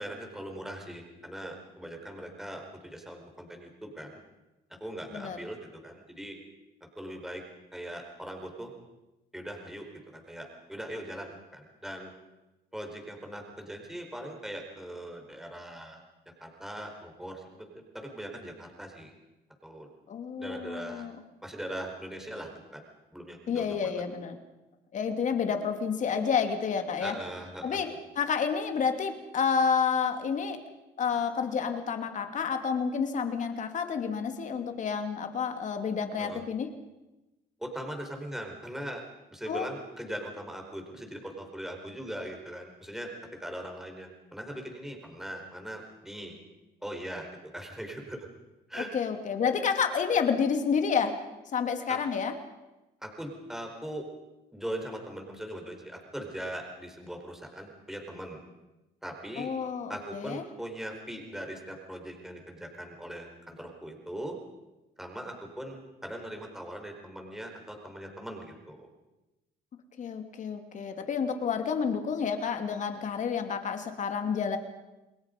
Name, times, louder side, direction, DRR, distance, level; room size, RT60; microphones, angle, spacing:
voice 1, 0.0-4.2 4.8-6.4 7.0-7.4 7.7-8.7 9.3-12.1 12.7-16.0 16.4-19.1 19.6-19.9 20.4-21.1 21.4-22.8 23.1-24.0 27.0-27.8 36.2-36.4 37.6-39.0 39.3-43.1 43.4-46.4 46.8-47.3 47.5-48.3 48.7-48.9 51.9-52.0 53.0-54.0 54.5-58.4 59.0-59.5 59.9-64.3 65.0-68.9, right 1 dB, ahead, 2 dB, 4.7 m, -40 dB
voice 2, 20.1-21.1 23.5-24.4 24.9-27.1 27.6-30.6 31.0-36.7 39.5-39.7 48.9-51.2 51.5-52.3 59.4-60.4 70.0-74.6, left 6 dB, 50° left, 6 dB, 2.8 m, -29 dB
28.5 x 21.0 x 5.4 m, 1.0 s
cardioid pair, 110°, 17 cm